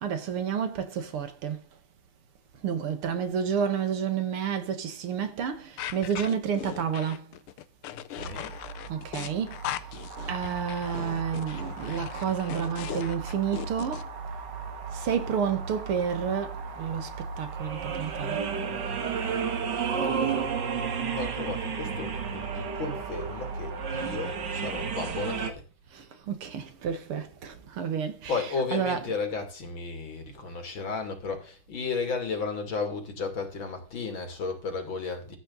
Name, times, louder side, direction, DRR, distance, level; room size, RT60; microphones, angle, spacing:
voice 1, 0.0-1.7 2.6-7.3 8.9-9.6 10.3-14.1 14.9-18.5 25.9-28.5 28.7-29.0, right 7 dB, 90° right, 2.4 m, -30 dB
sound 1, 5.8-14.0, left 12 dB, 85° left, 1.7 m, -38 dB
voice 2, 7.9-8.5 19.9-20.5 21.2-25.6 28.3-35.4, left 4 dB, 65° left, 3.4 m, -34 dB
sound 2, 8.2-25.5, right 6 dB, 55° right, 2.1 m, -33 dB
14.5 x 8.5 x 4.0 m
omnidirectional pair, 2.3 m